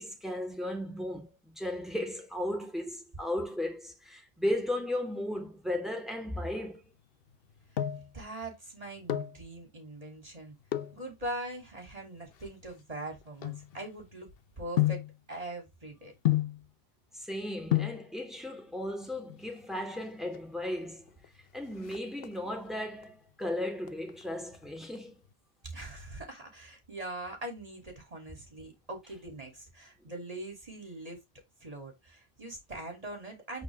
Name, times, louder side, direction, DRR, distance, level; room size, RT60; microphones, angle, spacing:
voice 1, 0.0-6.9 17.1-25.2, left 1 dB, ahead, 2.6 m, -35 dB
sound 1, 7.3-8.2 8.9-9.4 10.7-11.0 11.8-14.2 14.8-15.2 16.3-16.7 17.4-17.5 17.7-18.1 19.2-19.7 20.0-20.1 20.3-20.5 20.9-21.3 21.6-22.6 23.0-23.5 23.8-25.0 25.3-25.4, left 14 dB, 70° left, 0.9 m, -31 dB
voice 2, 8.1-10.5 10.9-14.3 14.6-15.0 15.3-16.1 25.7-31.2 31.6-33.6, right 1 dB, 35° right, 3.0 m, -42 dB
8.5 x 4.4 x 3.4 m
omnidirectional pair, 1.0 m